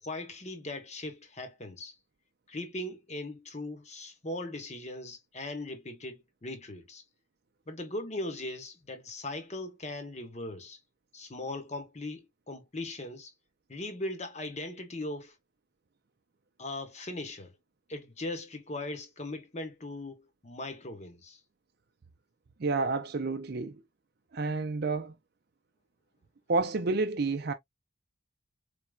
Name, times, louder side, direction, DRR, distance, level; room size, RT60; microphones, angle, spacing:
voice 1, 0.0-2.0 2.5-7.0 7.7-10.8 11.1-13.3 13.7-15.3 16.6-17.5 17.9-21.4, left 2 dB, 35° left, 1.0 m, -39 dB
voice 2, 22.6-23.7 24.3-25.1 26.5-27.5, right 3 dB, 50° right, 0.5 m, -29 dB
4.3 x 3.4 x 2.4 m
head